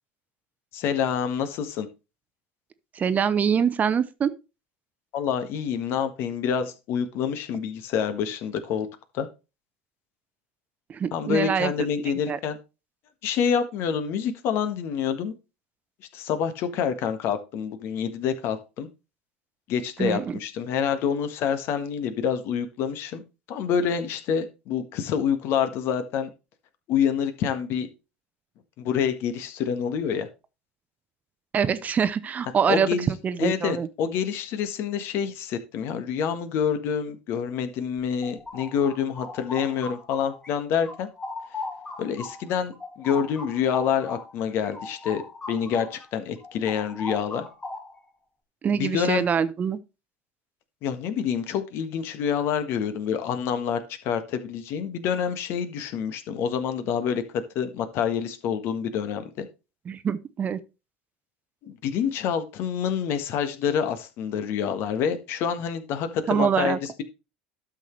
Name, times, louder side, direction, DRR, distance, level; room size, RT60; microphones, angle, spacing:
voice 1, 0.7-1.9 5.1-8.9 9.1-9.3 11.1-12.6 13.2-15.3 16.1-18.9 19.7-23.2 23.5-26.3 26.9-27.9 28.8-30.3 32.7-33.1 33.4-41.1 42.0-45.2 45.5-47.4 48.7-49.2 50.8-59.5 61.6-67.0, left 7 dB, 55° left, 1.5 m, -27 dB
voice 2, 2.9-4.3 10.9-11.9 12.3-12.4 20.0-20.4 31.5-33.9 48.6-49.8 59.9-60.6 66.3-66.8, right 7 dB, 35° right, 0.8 m, -24 dB
sound 1, 38.0-40.5 40.8-46.0 46.4-48.1, left 3 dB, 20° left, 2.2 m, -38 dB
12.0 x 6.3 x 3.2 m
hypercardioid pair, 75°, 5 cm